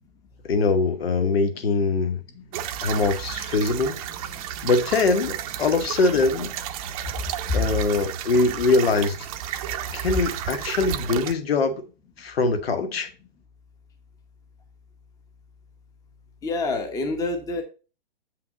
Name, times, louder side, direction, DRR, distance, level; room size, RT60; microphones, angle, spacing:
voice 1, 0.4-2.2 2.8-4.0 4.6-6.5 7.5-9.2 9.9-11.8 12.2-13.1, left 3 dB, 70° left, 1.8 m, -22 dB
sound 1, 2.5-11.3, right 10 dB, 35° right, 0.8 m, -32 dB
voice 2, 16.4-17.6, left 3 dB, 10° left, 1.0 m, -26 dB
8.0 x 5.8 x 3.9 m
hypercardioid pair, 145°, 31 cm